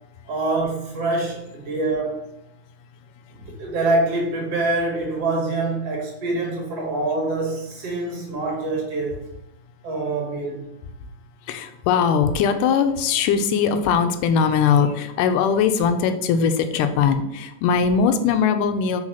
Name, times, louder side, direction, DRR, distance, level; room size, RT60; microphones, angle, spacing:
voice 1, 0.3-2.2 3.4-9.3 9.8-10.6, right 2 dB, 55° right, -1 dB, 2.1 m, -25 dB
voice 2, 11.5-19.0, left 6 dB, 85° left, 8 dB, 2.1 m, -20 dB
4.9 x 4.3 x 5.6 m, 0.85 s
omnidirectional pair, 3.7 m